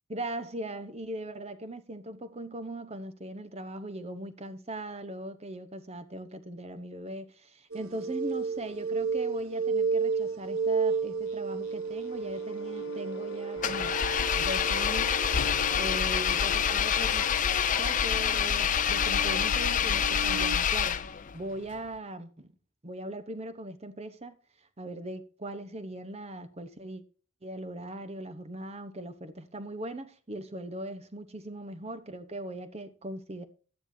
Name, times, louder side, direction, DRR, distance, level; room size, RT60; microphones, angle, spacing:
voice 1, 0.1-14.0 14.4-15.1 15.8-17.3 17.8-21.0 21.3-22.5 22.8-24.4 24.8-27.0 27.4-33.5, right 1 dB, 30° right, 0.9 m, -39 dB
sound 1, 7.7-17.2 17.9-20.6, right 5 dB, 70° right, 0.9 m, -33 dB
sound 2, 11.2-20.3, left 2 dB, 55° left, 1.1 m, -44 dB
Engine, 13.6-21.3, left 8 dB, 35° left, 0.5 m, -27 dB
12.0 x 9.8 x 2.7 m
head